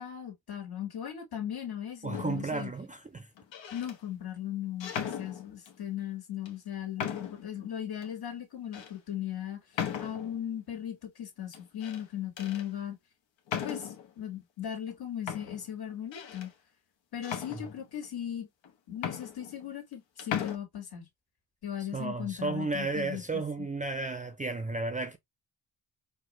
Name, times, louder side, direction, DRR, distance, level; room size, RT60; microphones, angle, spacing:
voice 1, 0.0-2.7 3.7-4.9 5.2-9.6 10.0-13.0 13.6-16.5 17.1-18.5 18.9-21.1 21.6-23.7, left 10 dB, 55° left, 1.9 m, -38 dB
voice 2, 2.0-3.3 4.9-5.1 17.5-17.7 21.9-25.2, right 3 dB, 20° right, 0.5 m, -33 dB
sound 1, 2.1-2.6 3.4-4.0 4.8-5.8 6.4-6.5 7.0-7.5 8.0-8.1 8.7-8.9 9.7-10.4 11.5-12.0 12.4-12.7 13.5-14.1 14.9-15.0 15.3-16.5 17.2-18.1 18.6-18.7 18.9-19.9 20.2-20.6, left 8 dB, 80° left, 1.2 m, -37 dB
4.4 x 2.5 x 3.1 m
cardioid pair, 95°, 44 cm